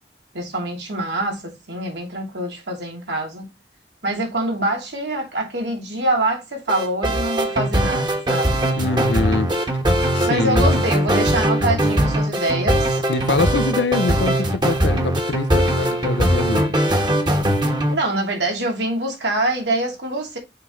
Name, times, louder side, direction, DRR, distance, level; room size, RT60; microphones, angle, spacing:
voice 1, 0.3-3.5 4.0-8.7 10.2-12.9 17.9-20.4, right 1 dB, 80° right, 2.8 m, -25 dB
sound 1, 6.7-17.9, right 1 dB, 25° right, 1.3 m, -20 dB
voice 2, 8.8-9.5 10.1-10.8 13.1-16.8, left 3 dB, 85° left, 0.6 m, -24 dB
6.5 x 5.7 x 3.1 m
head